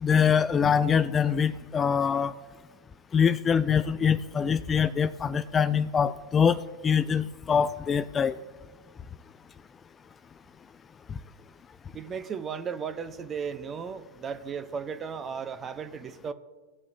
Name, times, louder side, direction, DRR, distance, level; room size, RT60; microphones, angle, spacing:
voice 1, 0.0-2.3 3.1-8.4, left 7 dB, 20° left, 0.3 m, -24 dB
voice 2, 11.9-16.3, right 6 dB, 25° right, 0.7 m, -35 dB
17.5 x 7.3 x 2.7 m
hypercardioid pair, 115°, 0 cm